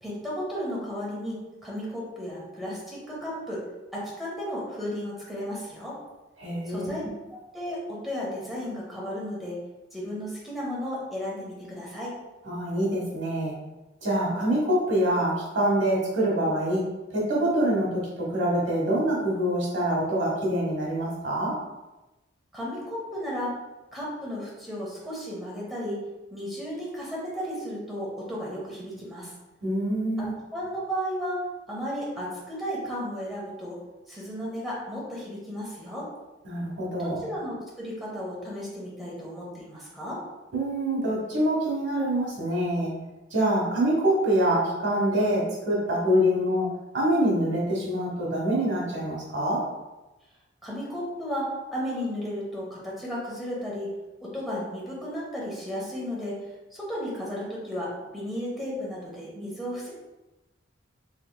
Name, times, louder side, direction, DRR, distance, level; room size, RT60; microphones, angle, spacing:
voice 1, 0.0-3.6 3.9-6.0 6.7-7.0 7.3-9.6 9.9-12.1 22.5-23.5 23.9-26.0 26.3-29.3 30.2-30.3 30.5-31.4 31.7-33.8 34.1-36.1 37.0-40.2 50.6-53.9 54.2-56.3 56.7-59.9, equal, ahead, -6 dB, 0.9 m, -34 dB
voice 2, 6.4-6.9 12.4-13.5 14.0-16.8 17.1-21.6 29.6-30.3 36.4-37.2 40.5-42.9 43.3-49.6, right 1 dB, 65° right, -4 dB, 1.2 m, -25 dB
3.4 x 3.1 x 2.3 m, 1.0 s
head